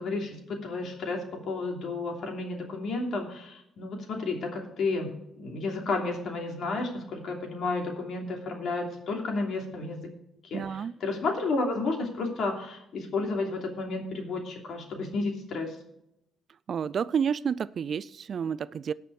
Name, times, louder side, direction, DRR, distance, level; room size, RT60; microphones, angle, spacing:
voice 1, 0.0-10.1 10.4-15.7, left 3 dB, 60° left, 3.0 m, -32 dB
voice 2, 10.5-10.9 16.7-18.9, right 7 dB, 50° right, 0.3 m, -30 dB
17.5 x 6.0 x 4.7 m
cardioid pair, 135°, 0 cm